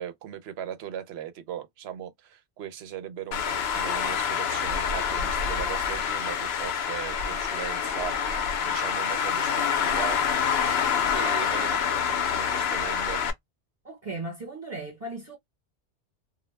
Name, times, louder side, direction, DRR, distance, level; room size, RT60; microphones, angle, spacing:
voice 1, 0.0-10.2 11.1-13.2, right 10 dB, 70° right, 0.8 m, -38 dB
Traffic noise roadway noise, 3.3-13.3, left 7 dB, 70° left, 0.8 m, -27 dB
voice 2, 13.8-15.4, right 2 dB, 35° right, 1.1 m, -36 dB
2.2 x 2.1 x 3.0 m
omnidirectional pair, 1.1 m